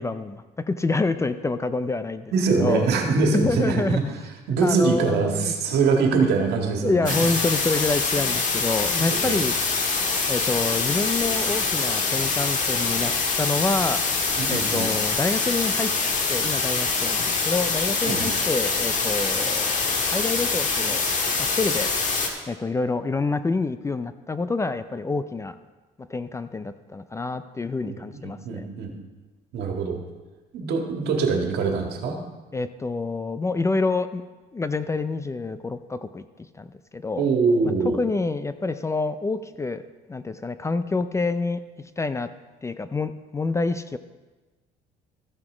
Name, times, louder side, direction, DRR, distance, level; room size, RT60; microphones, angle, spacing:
voice 1, 0.0-2.3 2.6-2.9 3.3-4.0 4.6-5.5 6.8-9.6 10.3-14.0 14.5-15.9 16.3-21.1 21.4-25.5 26.0-28.7 32.5-34.2 34.5-36.2 36.5-36.7 36.9-37.3 37.9-39.8 40.1-41.6 42.0-42.3 42.6-44.0, left 3 dB, 15° left, 12 dB, 0.4 m, -27 dB
voice 2, 2.3-4.0 4.5-7.2 9.1-9.4 14.4-14.9 18.1-18.3 27.8-28.9 29.5-30.0 30.5-32.2 37.2-38.0, right 4 dB, 75° right, 2 dB, 1.8 m, -23 dB
sound 1, 7.1-22.3, left 4 dB, 45° left, 1.6 m, -24 dB
13.5 x 5.9 x 4.9 m, 1.2 s
cardioid pair, 110°, 17 cm